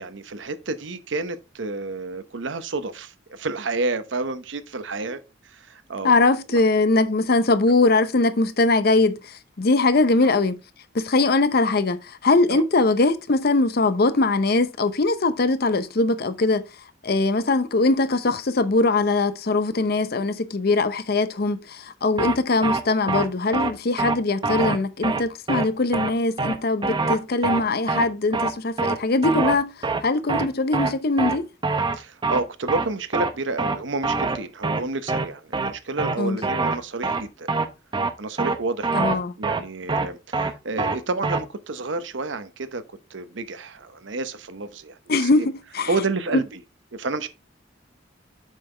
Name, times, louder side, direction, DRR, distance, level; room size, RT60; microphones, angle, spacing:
voice 1, 0.0-6.1 6.5-6.6 12.5-12.6 31.9-37.5 38.2-42.8 43.1-45.5 45.9-46.6 46.9-47.3, right 3 dB, 80° right, 0.8 m, -30 dB
voice 2, 6.0-10.6 10.9-16.6 17.0-31.5 36.2-36.4 38.9-39.4 45.1-45.9, left 3 dB, 55° left, 0.7 m, -21 dB
sound 1, 22.2-22.4 22.6-22.8 23.1-23.3 23.5-23.7 24.0-24.2 24.4-24.8 25.0-25.2 25.5-25.7 25.9-26.1 26.4-26.6 26.8-27.2 27.4-27.6 27.9-28.1 28.3-28.5 28.8-29.0 29.2-29.6 29.8-30.0 30.3-30.5 30.7-30.9 31.2-31.4 31.6-32.0 32.2-32.4 32.7-32.9 33.1-33.3 33.6-33.8 34.0-34.4 34.6-34.8 35.1-35.3 35.5-35.7 36.0-36.2 36.4-36.8 37.0-37.2 37.5-37.7 37.9-38.1 38.4-38.6 38.8-39.2 39.4-39.6 39.9-40.1 40.3-40.5 40.8-41.0 41.2-41.4, right 3 dB, 25° right, 0.7 m, -24 dB
7.4 x 5.6 x 3.2 m
head